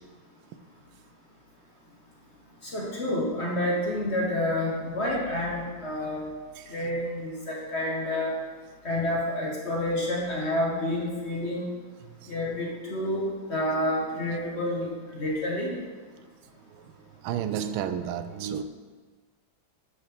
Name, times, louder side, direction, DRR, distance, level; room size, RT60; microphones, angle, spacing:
voice 1, 2.6-6.3 6.7-8.3 8.8-11.7 12.3-13.2 13.5-15.7, left 1 dB, 40° left, -3 dB, 1.2 m, -29 dB
voice 2, 17.2-18.6, right 9 dB, 90° right, 10 dB, 1.4 m, -31 dB
9.5 x 6.4 x 3.5 m, 1.4 s
omnidirectional pair, 2.2 m